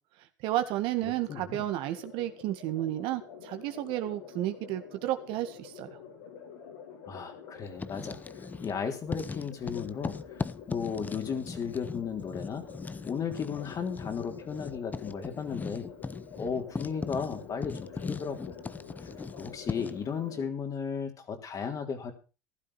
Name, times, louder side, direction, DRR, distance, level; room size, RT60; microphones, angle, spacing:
voice 1, 0.4-5.9, right 14 dB, 65° right, 8 dB, 1.9 m, -32 dB
sound 1, 1.0-20.5, left 7 dB, 85° left, 7.3 m, -48 dB
voice 2, 7.1-8.2 8.6-10.2 10.7-12.7 13.0-15.9 16.4-18.6 19.0-19.1 19.4-22.1, left 6 dB, 35° left, 5 dB, 3.6 m, -35 dB
Writing, 7.7-8.8 9.1-20.1, left 4 dB, 15° left, 0.7 m, -39 dB
15.0 x 12.0 x 4.4 m, 0.33 s
supercardioid pair, 90°, 10 cm